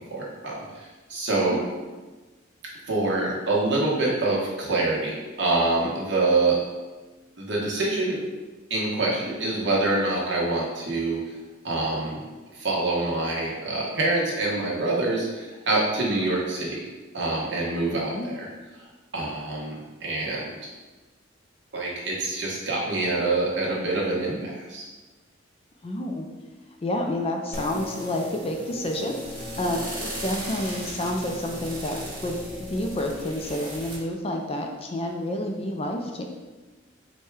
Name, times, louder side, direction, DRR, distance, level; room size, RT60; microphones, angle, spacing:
voice 1, 0.1-1.6 2.9-6.6 7.4-8.2 8.7-11.3 11.6-12.2 12.5-16.8 17.1-18.5 19.1-20.5 21.7-24.9, right 2 dB, 60° right, -4 dB, 1.1 m, -26 dB
voice 2, 17.9-18.3 25.8-26.3 26.8-36.2, left 1 dB, 30° left, 2 dB, 0.4 m, -29 dB
sound 1, 27.5-34.0, equal, 25° right, 1.5 m, -36 dB
4.4 x 2.3 x 4.7 m, 1.2 s
head